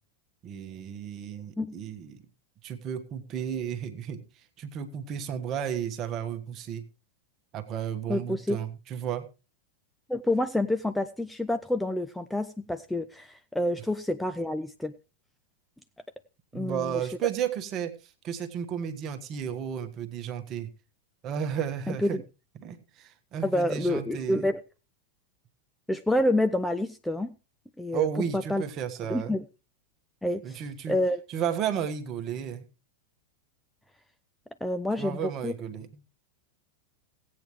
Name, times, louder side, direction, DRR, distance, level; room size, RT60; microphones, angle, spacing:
voice 1, 0.4-2.2 2.6-6.9 7.5-9.3 16.5-20.7 21.2-22.2 22.6-24.5 27.9-29.4 30.4-31.0 31.3-32.7 35.0-35.9, right 8 dB, 35° right, 1.3 m, -33 dB
voice 2, 8.1-8.6 10.1-14.9 16.5-17.0 22.0-22.2 23.4-24.6 25.9-27.3 27.8-28.1 28.3-28.6 29.1-29.4 30.2-30.6 30.9-31.2 34.6-35.6, left 1 dB, 5° left, 0.5 m, -28 dB
16.5 x 8.7 x 3.2 m
figure-of-eight pair, 90°, 0 cm